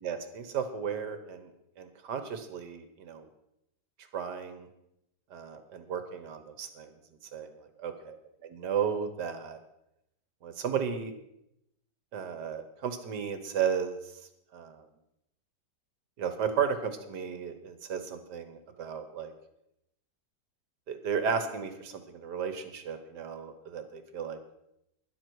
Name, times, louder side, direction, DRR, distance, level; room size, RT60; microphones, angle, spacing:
voice 1, 0.0-1.5 1.8-3.3 4.1-4.7 5.3-6.9 7.3-7.5 7.8-7.9 8.4-9.6 10.4-11.1 12.1-14.0 14.5-14.8 16.2-19.3 20.9-24.4, right 7 dB, 70° right, 9 dB, 1.6 m, -34 dB
12.5 x 11.0 x 4.6 m, 0.83 s
omnidirectional pair, 2.0 m